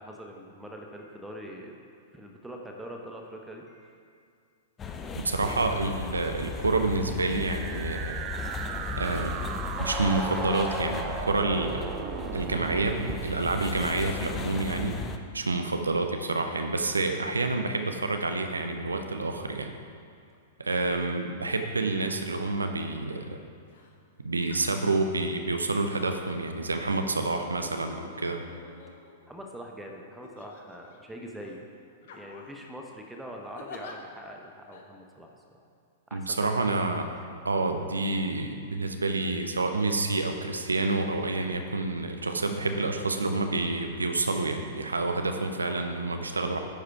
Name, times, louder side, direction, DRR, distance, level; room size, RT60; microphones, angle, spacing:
voice 1, 0.0-1.7 2.1-4.0 20.9-21.0 29.3-31.7 32.0-35.6 36.1-37.1, equal, 5° right, 1 dB, 0.9 m, -43 dB
sound 1, 4.8-15.2, left 4 dB, 20° left, 0.5 m, -36 dB
voice 2, 5.1-8.2 9.0-9.4 9.8-11.8 12.3-15.0 15.3-19.7 20.6-23.4 24.2-28.4 36.1-37.1 37.4-46.6, right 3 dB, 80° right, 6 dB, 0.7 m, -28 dB
sound 2, 7.2-15.1, right 9 dB, 40° right, 0.4 m, -38 dB
sound 3, 23.7-23.9 24.4-25.1 25.9-26.4 27.4-29.4 30.2-31.0 31.4-31.6 32.0-32.6 33.5-33.9 34.7-34.8, left 5 dB, 60° left, 0.9 m, -48 dB
10.5 x 4.9 x 4.6 m, 2.3 s
figure-of-eight pair, 100°, 0 cm